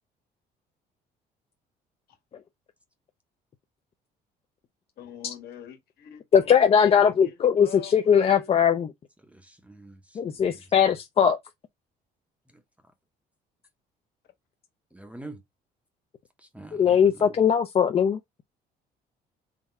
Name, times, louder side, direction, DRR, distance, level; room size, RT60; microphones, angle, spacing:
voice 1, 5.0-8.5, left 9 dB, 65° left, 1.5 m, -44 dB
voice 2, 6.3-8.9 10.2-11.4 16.7-18.2, left 7 dB, 35° left, 0.5 m, -20 dB
voice 3, 9.3-10.0 14.9-15.4 16.5-17.4, right 2 dB, 10° right, 0.7 m, -44 dB
3.8 x 2.3 x 4.1 m
cardioid pair, 110°, 17 cm